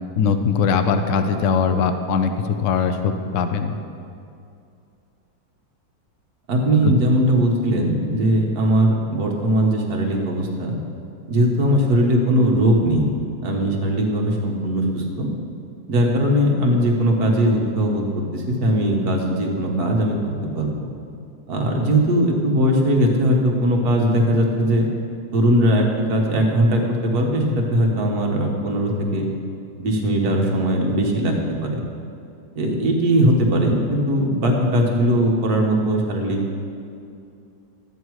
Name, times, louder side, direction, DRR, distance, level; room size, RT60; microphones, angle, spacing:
voice 1, 0.2-2.3 2.6-3.7 6.8-7.0, left 6 dB, 65° left, 7 dB, 0.7 m, -20 dB
voice 2, 6.5-10.8 11.3-13.1 13.4-15.3 15.9-18.0 18.3-20.2 20.5-20.9 21.5-24.9 25.3-29.3 29.8-31.8 32.5-36.4, right 1 dB, 55° right, 0 dB, 1.8 m, -19 dB
13.0 x 9.1 x 4.7 m, 2.5 s
omnidirectional pair, 2.1 m